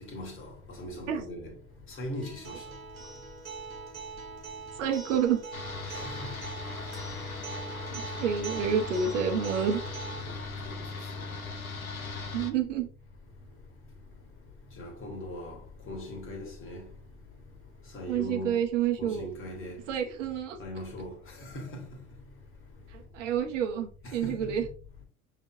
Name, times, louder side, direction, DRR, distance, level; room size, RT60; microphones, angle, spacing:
voice 1, 0.1-0.5 0.8-1.5 2.0-2.6 5.9-6.0 10.2-10.3 10.6-10.8 14.8-15.6 15.9-16.8 17.9-18.6 19.0-19.8 20.6-21.1 21.5-21.8 24.0-24.5, left 1 dB, 30° left, 1.6 m, -39 dB
Acoustic guitar, 2.2-10.2, right 4 dB, 80° right, 1.3 m, -42 dB
voice 2, 4.8-5.4 7.9-9.8 12.3-12.9 18.1-19.3 19.9-20.6 22.9-24.6, right 8 dB, 60° right, 1.0 m, -29 dB
sound 1, 5.5-12.5, left 4 dB, 90° left, 0.6 m, -38 dB
6.2 x 3.2 x 2.6 m
figure-of-eight pair, 70°, 41 cm